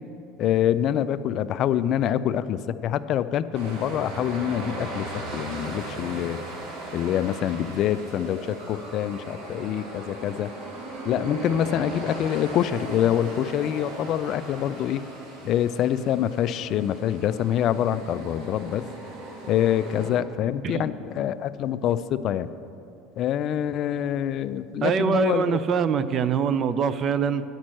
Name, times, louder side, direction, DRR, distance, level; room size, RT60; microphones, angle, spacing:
voice 1, 0.4-5.1 5.3-6.4 6.9-10.5 11.1-15.0 15.4-18.9 19.5-22.5 23.2-25.6, left 10 dB, 50° left, 14 dB, 0.3 m, -25 dB
sound 1, 3.5-20.1, right 2 dB, 75° right, 1.8 m, -38 dB
voice 2, 24.8-27.4, right 6 dB, 35° right, 14 dB, 0.4 m, -24 dB
10.0 x 5.3 x 7.5 m, 2.7 s
cardioid pair, 135°, 0 cm